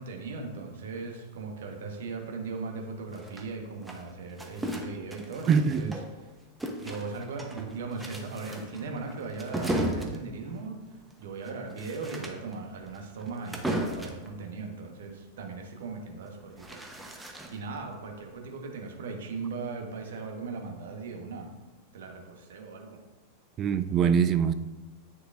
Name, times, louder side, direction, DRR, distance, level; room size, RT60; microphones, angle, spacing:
voice 1, 0.0-5.9 6.8-10.8 11.2-16.8 17.5-21.5 21.9-23.0, right 4 dB, 60° right, 1.3 m, -38 dB
sound 1, 3.1-6.2 6.6-14.3 16.1-17.8, right 1 dB, 5° right, 1.0 m, -36 dB
voice 2, 5.5-6.0 23.6-24.5, right 7 dB, 30° right, 0.3 m, -23 dB
9.6 x 6.6 x 2.6 m
figure-of-eight pair, 90°, 0 cm